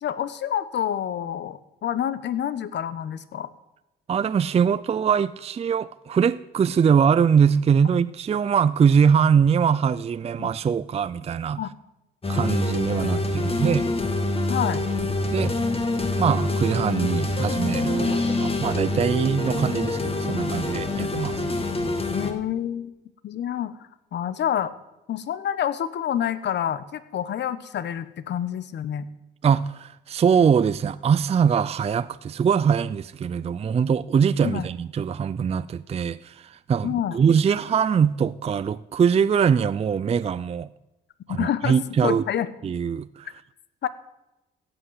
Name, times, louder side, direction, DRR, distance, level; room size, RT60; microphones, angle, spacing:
voice 1, 0.0-3.5 10.4-10.5 11.6-11.7 14.5-14.8 18.0-18.2 20.9-21.2 22.1-22.9 23.2-23.8 24.1-24.7 25.1-29.1 34.4-34.7 36.8-37.2 41.3-41.8 42.0-42.5 43.8-43.9, left 10 dB, 60° left, 15 dB, 1.0 m, -28 dB
voice 2, 4.1-11.6 12.3-13.9 15.3-15.5 16.2-21.4 29.4-36.9 37.1-40.7 41.3-42.2 42.6-43.3, right 7 dB, 30° right, 15 dB, 0.4 m, -22 dB
sound 1, 12.2-22.3, left 2 dB, 30° left, 2.2 m, -26 dB
15.5 x 8.0 x 8.0 m, 0.94 s
cardioid pair, 90°, 20 cm